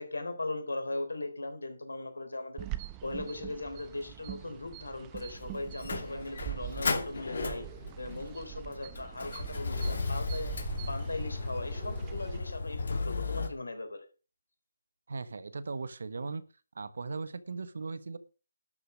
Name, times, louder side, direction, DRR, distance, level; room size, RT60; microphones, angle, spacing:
voice 1, 0.0-2.7 3.0-7.6 8.0-10.5 10.9-14.1, left 2 dB, 85° left, 6 dB, 3.7 m, -38 dB
sound 1, 2.6-12.4, right 17 dB, 20° right, 0.7 m, -43 dB
Motor vehicle (road), 5.2-13.5, left 3 dB, 60° left, 2.6 m, -35 dB
voice 2, 15.1-16.4 16.7-18.2, right 4 dB, 65° right, 14 dB, 1.3 m, -38 dB
12.0 x 6.5 x 6.3 m, 0.35 s
figure-of-eight pair, 160°, 0 cm